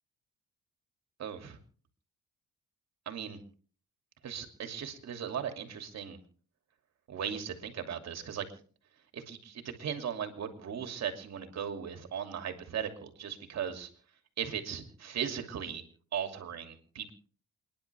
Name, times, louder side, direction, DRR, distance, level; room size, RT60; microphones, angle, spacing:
voice 1, 1.2-1.6 3.1-3.4 4.2-6.2 7.1-8.4 9.1-13.9 14.4-15.8 16.1-17.1, right 8 dB, 60° right, 6 dB, 2.7 m, -37 dB
28.5 x 10.5 x 3.4 m, 0.43 s
cardioid pair, 90°, 30 cm